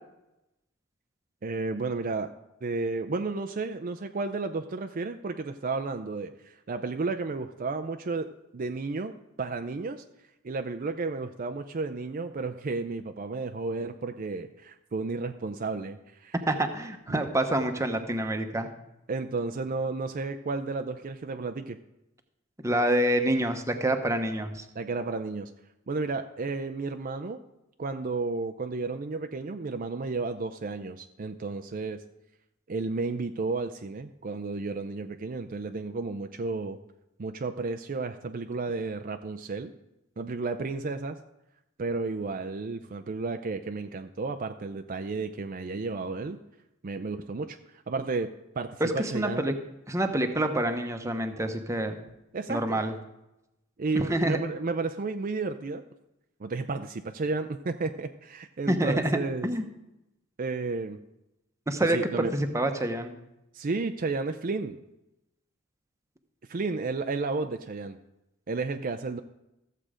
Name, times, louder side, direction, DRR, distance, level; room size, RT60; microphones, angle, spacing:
voice 1, 1.4-2.3 2.6-10.0 10.4-16.3 17.1-17.2 19.1-21.8 24.8-25.5 25.9-27.4 27.8-32.0 32.7-36.8 37.2-39.7 40.2-41.2 41.8-46.4 46.8-48.3 48.6-49.4 52.3-52.8 53.8-55.8 56.4-59.5 60.4-61.0 61.8-62.3 63.5-64.8 66.5-68.0 68.5-69.2, right 3 dB, 40° right, 7 dB, 0.5 m, -32 dB
voice 2, 16.5-18.7 22.6-24.7 48.8-49.5 49.9-52.0 52.5-52.9 53.9-54.4 58.7-59.1 59.4-59.6 61.7-62.0 62.3-63.1, right 1 dB, 15° right, 6 dB, 0.9 m, -27 dB
14.0 x 7.6 x 5.0 m, 0.91 s
head